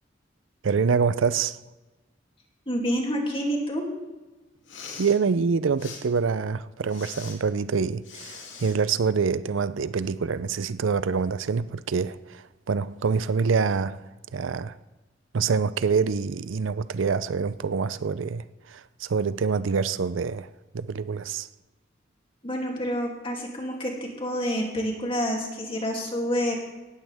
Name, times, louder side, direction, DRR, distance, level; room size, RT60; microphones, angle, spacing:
voice 1, 0.6-1.6 5.0-14.0 14.3-14.7 15.3-20.5 20.7-21.5, right 5 dB, 85° right, 0.5 m, -26 dB
voice 2, 2.7-3.9 22.4-26.6, equal, 30° left, 2.7 m, -28 dB
Respiratory sounds, 4.6-5.2 5.8-6.0 6.9-7.4 8.0-8.8, left 5 dB, 80° left, 2.7 m, -41 dB
17.5 x 14.0 x 3.5 m
head